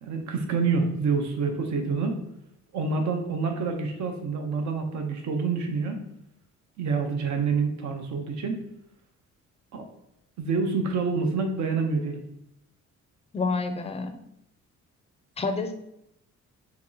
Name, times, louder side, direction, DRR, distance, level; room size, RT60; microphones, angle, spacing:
voice 1, 0.0-2.2 2.7-6.1 6.8-8.7 9.7-9.9 10.4-12.2, right 4 dB, 70° right, 4 dB, 0.7 m, -27 dB
voice 2, 13.3-14.2 15.4-15.7, left 3 dB, 20° left, 8 dB, 0.4 m, -28 dB
3.0 x 2.9 x 3.8 m, 0.80 s
cardioid pair, 90°, 30 cm